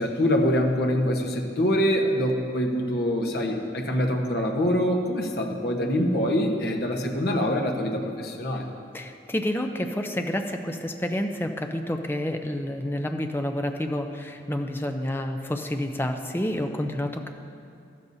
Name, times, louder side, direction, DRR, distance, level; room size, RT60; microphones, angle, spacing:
voice 1, 0.0-8.6, equal, 60° left, 1 dB, 1.1 m, -24 dB
voice 2, 8.9-17.3, left 1 dB, 10° left, 5 dB, 0.5 m, -29 dB
13.5 x 12.5 x 2.7 m, 2.5 s
head